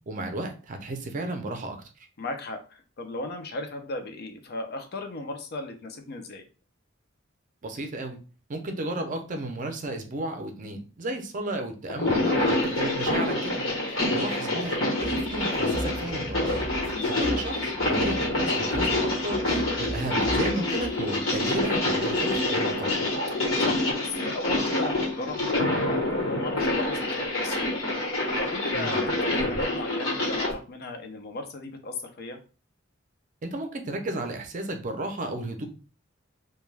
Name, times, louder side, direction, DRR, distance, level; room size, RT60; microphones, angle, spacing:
voice 1, 0.1-1.8 7.6-8.2 8.5-13.5 13.9-16.7 17.1-19.4 19.8-23.1 28.7-29.0 33.4-35.7, right 1 dB, 40° right, 5 dB, 0.5 m, -33 dB
voice 2, 2.2-6.4 13.9-14.3 16.9-17.2 23.6-27.8 28.4-32.4, left 2 dB, 50° left, 5 dB, 0.5 m, -36 dB
sound 1, 11.9-30.5, left 2 dB, 75° left, 1.1 m, -27 dB
sound 2, 15.0-20.9, equal, 5° left, 0.6 m, -38 dB
2.2 x 2.2 x 3.2 m, 0.36 s
head